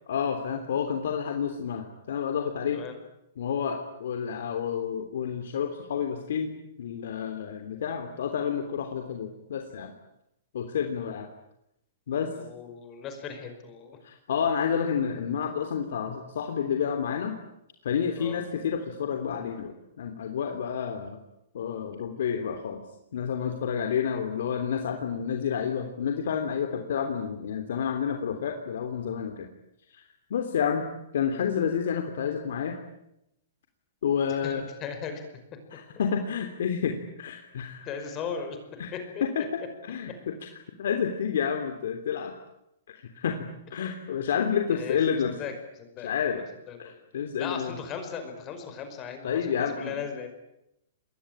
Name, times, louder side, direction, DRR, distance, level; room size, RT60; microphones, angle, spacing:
voice 1, 0.1-2.8 3.4-6.5 6.8-9.9 10.5-11.3 12.1-12.3 14.0-17.4 17.8-21.2 21.5-22.8 23.1-29.5 29.9-30.0 30.3-30.9 31.1-32.8 34.0-34.6 35.7-38.1 38.8-42.3 42.9-45.4 46.0-46.4 46.8-47.8 49.2-50.3, left 7 dB, 70° left, 5 dB, 3.1 m, -30 dB
voice 2, 12.3-14.0 18.2-18.4 34.4-35.2 37.9-38.6 38.9-39.0 44.7-45.0 45.2-45.5 45.8-46.1 46.7-46.9 47.4-50.3, left 6 dB, 25° left, 7 dB, 5.2 m, -37 dB
28.0 x 22.0 x 8.9 m, 0.84 s
hypercardioid pair, 155°, 0 cm